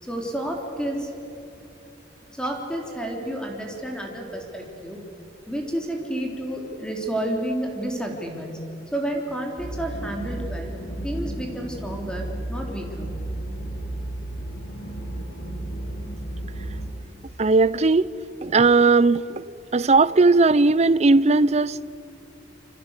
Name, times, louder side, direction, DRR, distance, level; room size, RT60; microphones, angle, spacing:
voice 1, 0.0-1.1 2.2-5.1 5.5-8.6 8.9-10.7 11.0-13.1, right 1 dB, 5° left, 3.6 m, -30 dB
sound 1, 9.6-16.9, right 1 dB, 80° left, 8.0 m, -33 dB
voice 2, 17.4-18.1 18.4-19.4 19.7-21.8, right 3 dB, 35° right, 0.6 m, -18 dB
27.5 x 25.5 x 8.3 m
head